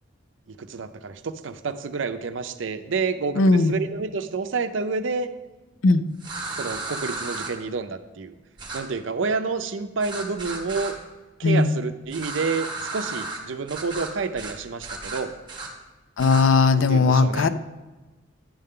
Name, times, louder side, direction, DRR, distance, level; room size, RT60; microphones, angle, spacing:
voice 1, 0.5-5.3 6.6-8.3 8.7-11.0 11.4-15.3 16.8-17.5, right 4 dB, 80° right, 9 dB, 0.5 m, -29 dB
voice 2, 3.3-3.7 5.8-6.0 11.4-11.8 16.2-17.5, left 3 dB, 90° left, 12 dB, 0.5 m, -18 dB
sound 1, 6.2-7.5 8.6-8.8 10.0-10.9 12.1-13.4 13.7-14.1 14.4-14.5 14.8-15.7 16.2-16.4, right 3 dB, 25° right, 1.1 m, -34 dB
10.5 x 6.7 x 3.7 m, 1.2 s
head